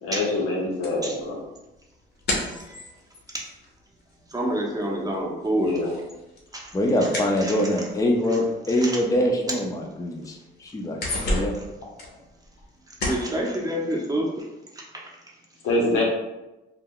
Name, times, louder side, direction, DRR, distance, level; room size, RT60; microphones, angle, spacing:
voice 1, 0.0-1.4 5.6-5.9 15.6-16.0, left 2 dB, 90° left, -3 dB, 0.8 m, -25 dB
sound 1, 0.8-4.5 4.8-8.0 8.8-8.9 9.3-9.4 9.8-10.4 10.7-12.7 13.0-13.4, left 1 dB, 55° left, 0.8 m, -32 dB
voice 2, 2.5-2.8 3.3-3.4 4.3-5.8 6.5-6.7 7.4-7.8 8.8-9.0 13.0-14.4 14.7-14.8, right 1 dB, 20° right, -2 dB, 0.7 m, -28 dB
voice 3, 6.7-11.5, left 1 dB, 15° left, 1 dB, 0.5 m, -24 dB
2.3 x 2.1 x 3.6 m, 0.99 s
cardioid pair, 90°, 20 cm